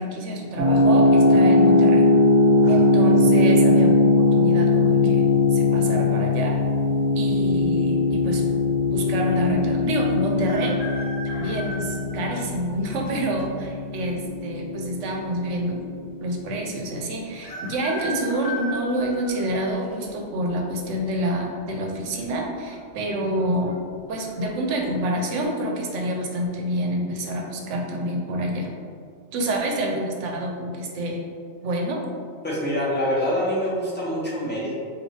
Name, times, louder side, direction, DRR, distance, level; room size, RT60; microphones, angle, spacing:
voice 1, 0.0-2.1 2.7-6.6 7.1-8.4 8.9-11.0 11.4-15.8 16.2-23.8 24.1-28.7 29.3-31.2 31.6-32.0, right 1 dB, 90° right, 0 dB, 1.0 m, -27 dB
sound 1, 0.6-15.3, left 2 dB, 65° right, 1.0 m, -20 dB
sound 2, 10.4-12.4 13.1-13.2 14.3-14.9 15.2-15.3 15.5-15.6 17.4-20.0 20.6-21.0 22.1-22.5 22.7-22.8 23.3-23.7 24.2-24.4, left 1 dB, 40° left, 0.6 m, -36 dB
voice 2, 32.4-34.7, equal, 10° left, -6 dB, 0.9 m, -25 dB
5.2 x 2.7 x 3.2 m, 2.2 s
omnidirectional pair, 1.2 m